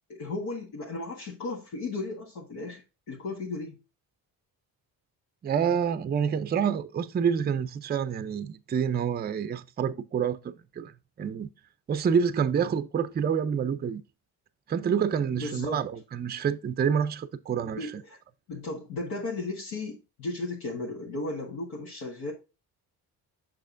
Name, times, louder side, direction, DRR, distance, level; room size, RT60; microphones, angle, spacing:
voice 1, 0.1-3.8 15.3-15.8 17.6-18.2 18.5-22.3, left 2 dB, 85° left, 1.6 m, -35 dB
voice 2, 5.4-10.9 11.2-11.5 11.9-14.0 14.7-17.8, right 7 dB, 25° right, 0.4 m, -27 dB
6.5 x 5.8 x 2.5 m
cardioid pair, 90°, 38 cm